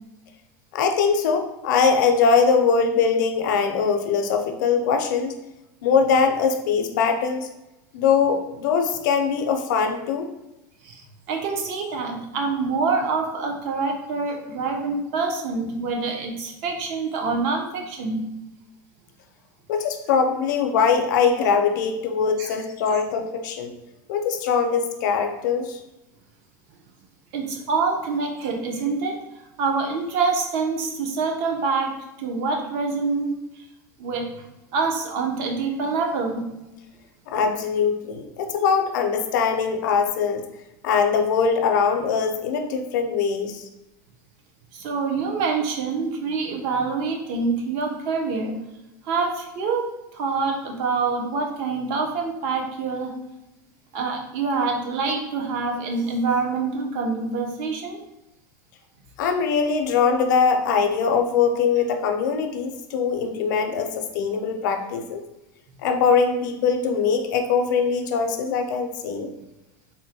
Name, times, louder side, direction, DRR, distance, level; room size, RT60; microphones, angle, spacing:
voice 1, 0.7-5.3 5.8-7.5 7.9-10.3 19.7-23.7 24.1-25.8 37.3-40.4 40.8-43.6 59.2-65.2 65.8-69.3, left 5 dB, 75° left, 5 dB, 0.5 m, -22 dB
voice 2, 10.8-18.2 22.4-22.6 27.3-29.2 29.6-33.6 34.0-34.3 34.7-36.5 44.7-48.6 49.0-53.2 53.9-58.0, right 4 dB, 55° right, 2 dB, 0.6 m, -26 dB
3.7 x 2.1 x 2.7 m, 0.94 s
supercardioid pair, 140°, 10 cm